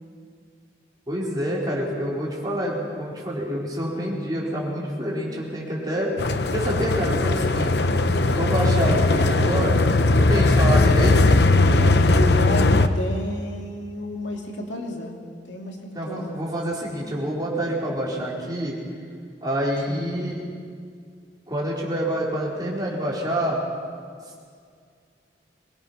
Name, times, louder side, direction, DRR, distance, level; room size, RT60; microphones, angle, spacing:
voice 1, 1.1-6.1 6.5-7.7 8.3-9.8 10.1-11.2 11.6-12.0 15.9-18.8 19.4-20.4 21.5-23.6, equal, 20° right, -5 dB, 4.5 m, -27 dB
sound 1, 6.2-12.9, left 2 dB, 60° left, 0.8 m, -19 dB
voice 2, 12.2-15.2 15.4-16.5 19.9-20.2, left 1 dB, 80° left, 1 dB, 2.6 m, -31 dB
23.0 x 19.5 x 5.8 m, 2.2 s
head